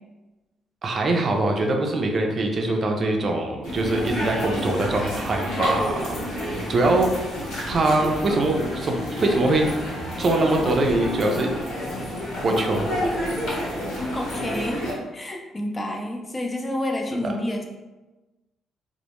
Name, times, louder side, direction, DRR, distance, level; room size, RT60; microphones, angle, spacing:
voice 1, 0.8-7.3 7.7-9.7 10.2-11.5 12.4-12.9, right 2 dB, 45° right, 2 dB, 0.4 m, -23 dB
sound 1, 3.6-14.9, equal, 85° left, 0.9 m, -29 dB
sound 2, 3.9-11.2, equal, 15° right, 0.9 m, -41 dB
voice 2, 14.0-17.7, left 1 dB, 20° left, 2 dB, 0.4 m, -29 dB
2.1 x 2.0 x 2.9 m, 1.1 s
cardioid pair, 90°, 0 cm